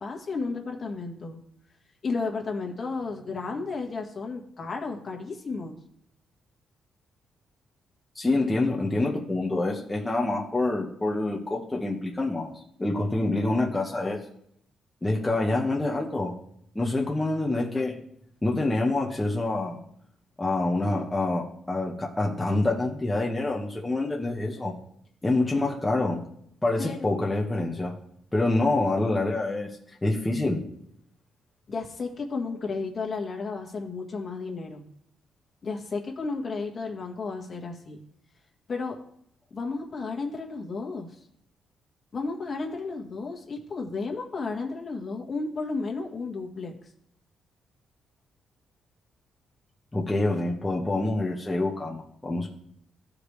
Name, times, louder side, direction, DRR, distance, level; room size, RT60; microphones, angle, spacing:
voice 1, 0.0-1.4 2.0-5.8 26.8-27.1 31.7-34.8 35.6-38.0 38.7-39.0 39.5-41.2 42.1-46.8, left 4 dB, 45° left, 0 dB, 1.7 m, -33 dB
voice 2, 8.1-14.2 15.0-16.3 16.7-18.0 18.4-19.8 20.4-24.8 25.2-26.2 26.6-27.9 28.3-30.7 49.9-52.5, left 2 dB, 15° left, -2 dB, 1.2 m, -26 dB
14.5 x 5.0 x 3.3 m, 0.71 s
cardioid pair, 95°, 0 cm